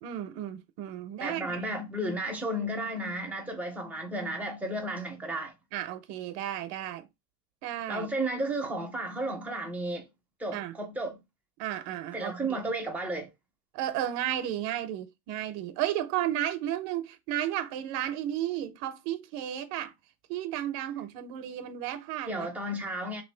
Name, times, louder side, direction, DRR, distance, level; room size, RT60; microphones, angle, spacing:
voice 1, 0.0-1.7 5.7-7.1 7.6-8.1 10.5-10.7 11.6-12.6 13.7-19.9 20.3-22.8, right 12 dB, 65° right, 0.5 m, -33 dB
voice 2, 1.2-5.5 7.9-10.1 10.4-11.2 12.1-13.3 22.3-23.2, right 1 dB, 5° right, 0.4 m, -33 dB
3.3 x 2.6 x 3.2 m
cardioid pair, 170°, 39 cm